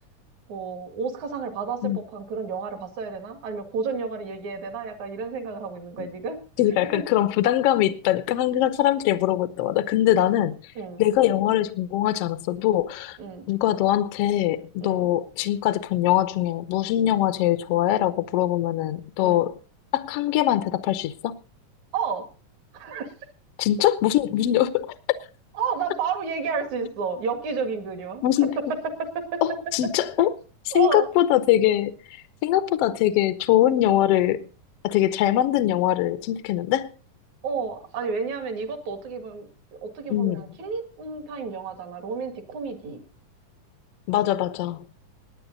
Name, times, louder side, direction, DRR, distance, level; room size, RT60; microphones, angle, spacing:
voice 1, 0.5-6.4 6.9-7.0 10.8-11.0 13.2-13.5 14.8-15.1 19.2-19.5 21.9-22.3 22.7-23.1 25.5-28.2 28.6-29.4 30.7-31.1 37.4-43.0, right 5 dB, 65° right, 3.2 m, -31 dB
voice 2, 6.6-10.6 11.0-13.2 13.5-19.6 19.9-21.4 23.6-24.9 28.2-28.6 29.4-30.3 30.7-31.9 32.4-34.5 34.8-36.9 40.1-40.4 44.1-44.8, left 12 dB, 75° left, 1.4 m, -22 dB
19.0 x 9.6 x 3.9 m
omnidirectional pair, 3.7 m